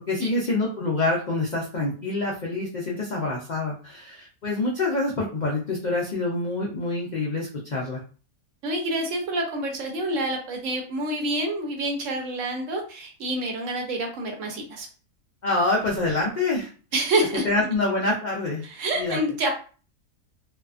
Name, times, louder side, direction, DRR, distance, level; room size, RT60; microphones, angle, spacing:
voice 1, 0.1-8.0 15.4-16.7 17.4-18.6 19.0-19.2, left 2 dB, 90° left, -3 dB, 0.4 m, -26 dB
voice 2, 8.6-14.9 16.9-17.7 18.6-19.5, right 1 dB, 65° right, 3 dB, 1.0 m, -27 dB
2.7 x 2.4 x 2.3 m, 0.39 s
omnidirectional pair, 1.6 m